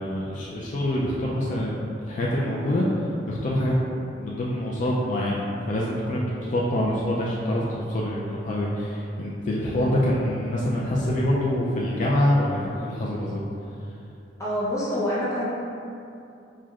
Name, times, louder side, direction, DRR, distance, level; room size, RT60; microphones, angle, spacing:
voice 1, 0.0-3.8 4.2-13.4, left 1 dB, 45° left, -4 dB, 0.4 m, -25 dB
voice 2, 14.4-15.5, left 1 dB, 20° left, -10 dB, 0.7 m, -27 dB
6.0 x 2.1 x 2.4 m, 2.6 s
head